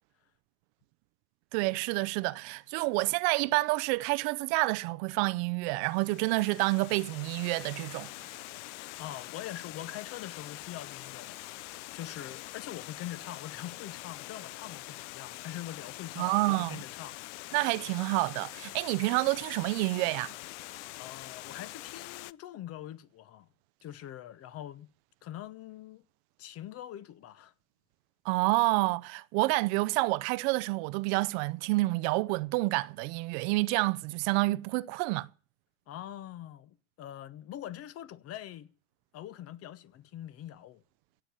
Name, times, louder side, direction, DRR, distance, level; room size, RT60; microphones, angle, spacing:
voice 1, 1.5-8.1 16.2-16.8 17.5-20.3 28.2-35.3, right 23 dB, 55° right, 0.6 m, -28 dB
Water, 5.8-22.3, left 19 dB, 70° left, 0.6 m, -44 dB
voice 2, 9.0-17.2 21.0-23.5 23.8-24.9 25.2-26.0 26.4-27.5 35.9-38.7 39.1-40.8, left 12 dB, 40° left, 1.0 m, -43 dB
17.0 x 7.0 x 9.4 m
supercardioid pair, 120°, 37 cm